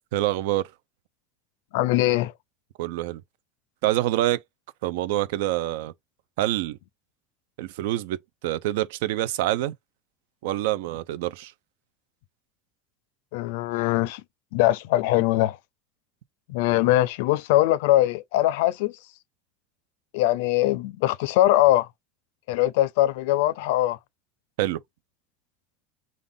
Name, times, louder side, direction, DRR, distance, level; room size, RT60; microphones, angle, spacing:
voice 1, 0.1-0.7 2.8-3.2 3.8-4.4 4.8-5.9 6.4-6.8 7.6-9.7 10.4-11.5 24.6-24.8, right 14 dB, 85° right, 0.5 m, -26 dB
voice 2, 1.7-2.3 13.3-14.2 14.5-15.6 16.5-18.9 20.1-21.9 22.5-24.0, left 15 dB, 80° left, 0.4 m, -21 dB
3.7 x 2.5 x 3.5 m
supercardioid pair, 135°, 0 cm